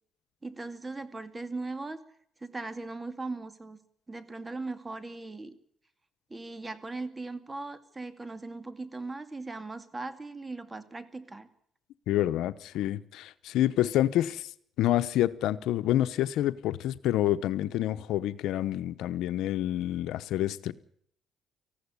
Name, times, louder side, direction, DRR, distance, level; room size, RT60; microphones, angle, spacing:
voice 1, 0.4-2.0 2.4-3.8 4.1-5.6 6.3-11.5, right 3 dB, 20° right, 2.3 m, -39 dB
voice 2, 12.1-14.5 14.8-20.7, left 13 dB, 90° left, 0.9 m, -28 dB
19.0 x 15.5 x 9.8 m
cardioid pair, 90°, 0 cm